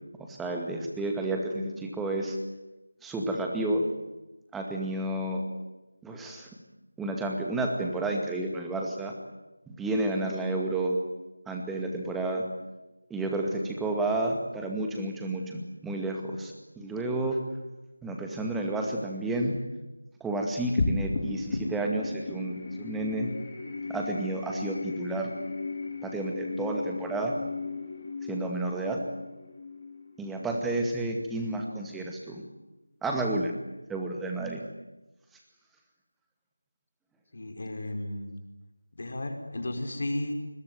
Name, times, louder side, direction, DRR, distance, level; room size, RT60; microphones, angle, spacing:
voice 1, 0.3-2.4 3.0-3.9 4.5-5.4 6.0-6.5 7.0-9.1 9.7-11.0 11.5-12.5 13.1-17.4 18.0-19.5 20.2-23.3 23.9-25.3 26.0-27.3 28.3-29.0 30.2-32.4 33.0-33.5 33.9-34.6, right 2 dB, 5° right, 1 dB, 2.2 m, -31 dB
sound 1, 20.8-31.4, left 3 dB, 30° left, 3.4 m, -35 dB
voice 2, 37.3-38.3 39.0-40.3, left 1 dB, 45° left, 5 dB, 5.2 m, -33 dB
27.0 x 22.0 x 9.5 m, 1.0 s
figure-of-eight pair, 165°, 0 cm